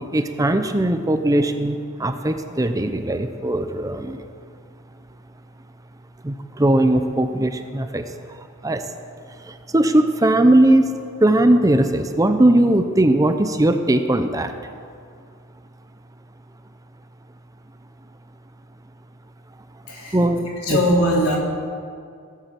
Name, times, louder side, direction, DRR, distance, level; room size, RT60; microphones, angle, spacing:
voice 1, 0.1-4.2 6.2-8.0 8.6-8.8 9.5-14.5 20.1-20.8, right 1 dB, 15° right, 8 dB, 0.5 m, -19 dB
voice 2, 19.9-20.2 20.6-21.4, equal, 75° left, -1 dB, 3.1 m, -20 dB
17.0 x 8.5 x 7.4 m, 2.3 s
head